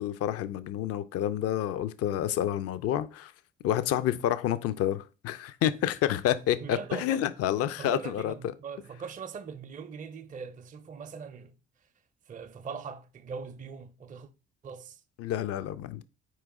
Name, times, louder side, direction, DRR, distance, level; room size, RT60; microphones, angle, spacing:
voice 1, 0.0-3.3 3.6-8.3 15.2-16.0, left 11 dB, 55° left, 0.5 m, -29 dB
voice 2, 6.6-7.2 7.8-11.6 12.3-14.3 14.6-15.0, right 6 dB, 25° right, 0.5 m, -41 dB
4.6 x 3.0 x 3.6 m
hypercardioid pair, 50°, 30 cm